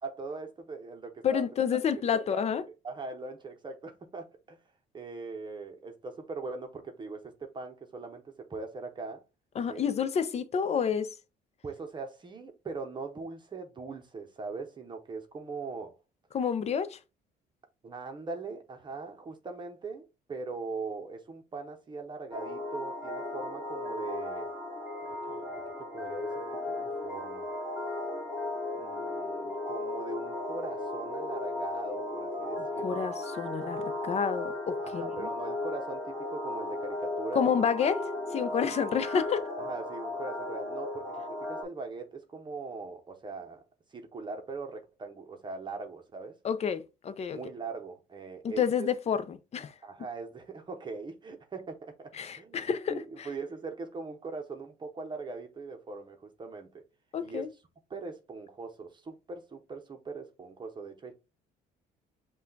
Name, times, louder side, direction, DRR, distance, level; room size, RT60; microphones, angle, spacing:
voice 1, 0.0-1.4 2.1-2.5 2.8-4.6 4.9-9.2 9.7-9.8 11.6-16.0 17.8-24.5 25.3-27.5 28.7-33.1 34.8-37.7 39.6-43.6 43.9-46.3 47.3-48.9 49.8-56.8 57.2-57.4 57.9-61.1, right 4 dB, 25° right, 0.8 m, -41 dB
voice 2, 1.2-2.6 9.6-11.1 16.3-17.0 32.8-35.1 37.3-38.0 38.3-39.4 46.4-47.4 48.6-49.7 52.1-53.3 57.1-57.5, left 7 dB, 40° left, 0.6 m, -29 dB
sound 1, 22.3-41.6, left 2 dB, 5° right, 1.9 m, -36 dB
5.4 x 2.3 x 3.9 m
cardioid pair, 110°, 17 cm